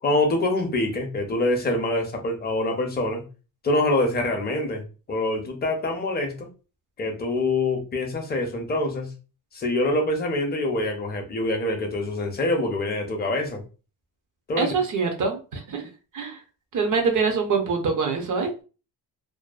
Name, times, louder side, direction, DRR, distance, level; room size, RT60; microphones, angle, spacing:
voice 1, 0.0-3.2 3.6-6.5 7.0-9.1 9.5-13.6 14.5-14.7, left 2 dB, 25° left, 3 dB, 0.5 m, -25 dB
voice 2, 14.6-15.9 16.1-16.4 16.7-18.6, right 5 dB, 55° right, 4 dB, 0.6 m, -24 dB
2.6 x 2.2 x 2.3 m, 0.34 s
cardioid pair, 155°, 39 cm